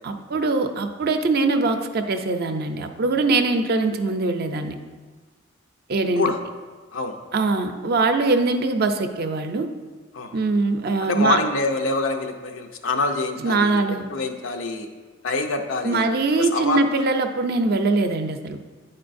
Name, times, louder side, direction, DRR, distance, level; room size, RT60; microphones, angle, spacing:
voice 1, 0.0-4.8 5.9-6.2 7.3-9.7 10.3-11.4 13.4-14.0 15.8-18.6, right 3 dB, 55° right, 7 dB, 0.5 m, -22 dB
voice 2, 11.0-13.8 14.1-14.9 15.2-16.0 16.4-16.8, left 3 dB, 90° left, 4 dB, 0.6 m, -25 dB
9.3 x 4.4 x 2.6 m, 1.4 s
head